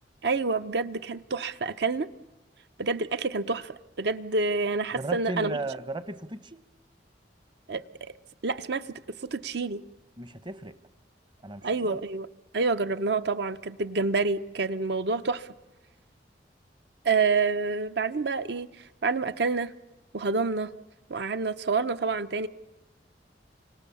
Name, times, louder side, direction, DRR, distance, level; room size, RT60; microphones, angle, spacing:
voice 1, 0.2-2.1 2.8-5.6 7.7-8.1 8.4-9.8 11.6-12.3 12.5-15.5 17.0-18.7 19.0-19.7 20.1-20.7 21.1-22.5, right 4 dB, 65° right, 0.8 m, -28 dB
voice 2, 4.9-6.6 10.2-10.8 11.4-12.0, right 2 dB, 25° right, 0.9 m, -36 dB
29.0 x 25.0 x 7.0 m
head